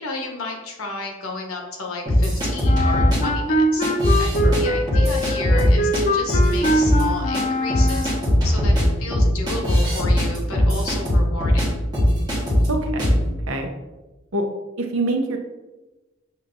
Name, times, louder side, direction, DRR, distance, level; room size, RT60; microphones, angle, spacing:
voice 1, 0.0-3.8 4.2-8.1 8.4-11.6, left 3 dB, 90° left, 2 dB, 0.9 m, -32 dB
sound 1, 2.1-3.2 3.8-4.6 4.9-6.0 6.3-7.0 7.3-7.4 7.7-11.7 11.9-12.7 13.0-13.2, equal, 20° right, 1.5 m, -19 dB
Wind instrument woodwind instrument, 2.6-8.4, equal, 35° left, 0.4 m, -23 dB
voice 2, 12.7-13.7 14.3-14.4 14.8-15.4, right 2 dB, 80° right, 3 dB, 0.7 m, -25 dB
6.4 x 3.0 x 2.6 m, 1.1 s
head